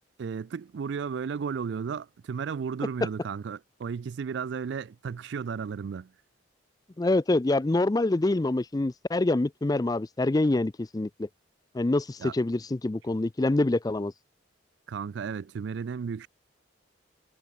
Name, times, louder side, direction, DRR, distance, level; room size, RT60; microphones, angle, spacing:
voice 1, 0.2-6.1 12.2-12.3 14.9-16.3, right 6 dB, 60° right, 0.3 m, -34 dB
voice 2, 7.0-11.3 11.7-14.1, left 2 dB, 20° left, 0.4 m, -26 dB
head